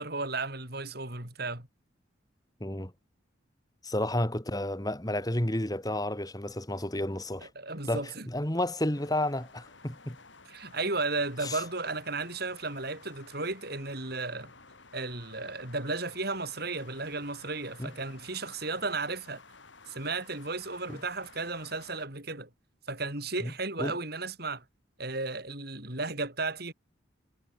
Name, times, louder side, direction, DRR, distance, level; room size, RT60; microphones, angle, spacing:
voice 1, 0.0-1.7 7.4-8.3 10.5-14.5 14.9-19.4 19.9-22.5 22.9-24.6 25.0-26.7, right 3 dB, 50° right, 5.8 m, -34 dB
voice 2, 2.6-2.9 3.8-7.5 7.9-10.2 11.4-11.6 17.8-17.9 23.4-23.5 23.8-24.0, left 1 dB, 20° left, 2.6 m, -31 dB
sound 1, 8.9-22.1, left 4 dB, 65° left, 6.5 m, -54 dB
head